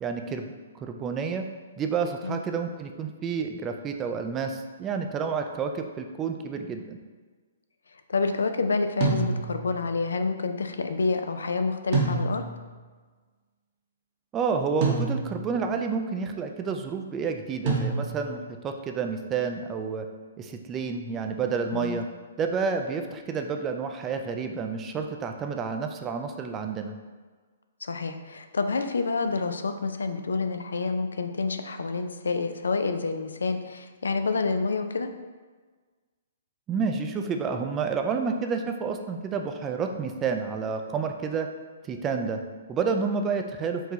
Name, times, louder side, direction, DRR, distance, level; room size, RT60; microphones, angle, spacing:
voice 1, 0.0-0.5 0.8-1.5 1.8-7.0 14.3-18.4 18.6-20.1 20.4-22.1 22.4-26.9 36.7-41.5 41.8-42.4 42.7-43.8, right 5 dB, 20° right, 5 dB, 0.3 m, -29 dB
voice 2, 8.1-12.4 21.7-22.0 27.8-35.1, left 4 dB, 90° left, 8 dB, 0.3 m, -28 dB
sound 1, 9.0-9.8 11.9-12.7 14.8-15.6 17.7-18.4, right 4 dB, 45° right, 0.9 m, -27 dB
4.7 x 2.3 x 3.9 m, 1.4 s
hypercardioid pair, 145°, 0 cm